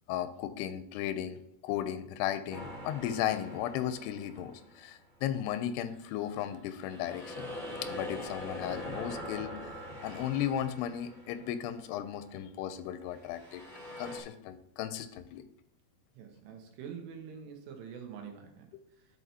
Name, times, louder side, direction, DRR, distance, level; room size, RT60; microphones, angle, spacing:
voice 1, 0.1-7.5 7.8-9.7 10.0-13.6 14.0-15.4 18.7-18.8, left 10 dB, 85° left, 10 dB, 2.6 m, -35 dB
sound 1, 2.5-5.0 5.5-12.0 13.1-14.2, left 1 dB, 45° left, 0.7 m, -43 dB
voice 2, 16.1-18.7 19.0-19.1, right 7 dB, 85° right, 3 dB, 3.4 m, -45 dB
11.0 x 6.0 x 2.8 m, 0.75 s
omnidirectional pair, 4.8 m